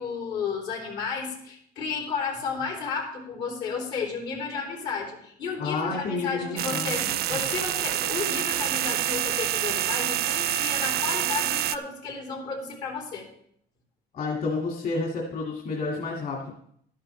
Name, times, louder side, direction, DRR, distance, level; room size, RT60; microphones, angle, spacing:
voice 1, 0.0-7.0 7.3-13.3, left 5 dB, 85° left, -1 dB, 3.7 m, -32 dB
voice 2, 5.6-7.5 14.1-16.5, left 3 dB, 60° left, -1 dB, 2.2 m, -30 dB
sound 1, 6.6-11.8, right 12 dB, 70° right, 0.5 m, -27 dB
12.0 x 11.0 x 3.3 m, 0.66 s
cardioid pair, 110°, 17 cm